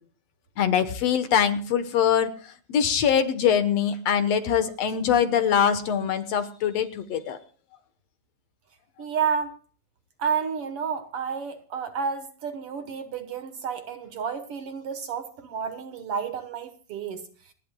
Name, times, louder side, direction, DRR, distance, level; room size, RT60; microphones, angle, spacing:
voice 1, 0.6-7.4, left 8 dB, 65° left, 10 dB, 2.1 m, -23 dB
voice 2, 9.0-9.5 10.2-17.2, right 6 dB, 60° right, 8 dB, 1.9 m, -30 dB
29.0 x 11.0 x 2.3 m, 0.40 s
omnidirectional pair, 3.4 m